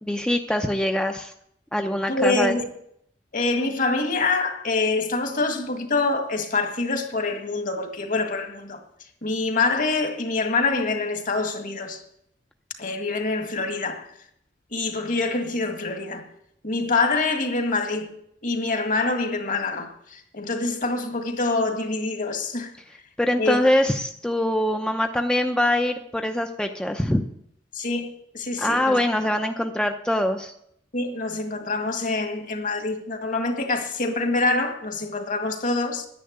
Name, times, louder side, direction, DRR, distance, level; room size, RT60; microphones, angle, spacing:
voice 1, 0.1-1.3 1.7-2.6 23.2-27.2 28.6-30.5, left 1 dB, 5° left, 0.6 m, -23 dB
voice 2, 2.1-2.7 3.3-8.8 9.2-12.0 12.8-14.1 14.7-16.2 16.6-18.1 18.4-22.7 23.4-23.6 27.7-29.3 30.9-36.1, left 3 dB, 50° left, 1.9 m, -25 dB
10.5 x 10.5 x 8.1 m
head